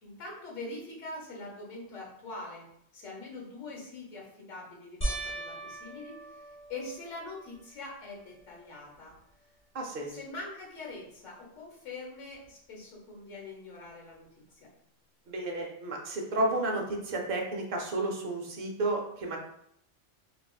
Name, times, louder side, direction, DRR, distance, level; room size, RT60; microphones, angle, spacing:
voice 1, 0.0-2.6 2.9-9.1 10.1-14.7, left 2 dB, 85° left, -2 dB, 1.3 m, -43 dB
sound 1, 5.0-7.6 8.2-8.8 9.1-9.2 12.4-12.5, right 1 dB, 25° left, 0.7 m, -38 dB
voice 2, 9.7-10.2 15.3-19.4, right 2 dB, 55° right, 1 dB, 0.8 m, -32 dB
4.1 x 2.4 x 2.3 m, 0.73 s
omnidirectional pair, 1.3 m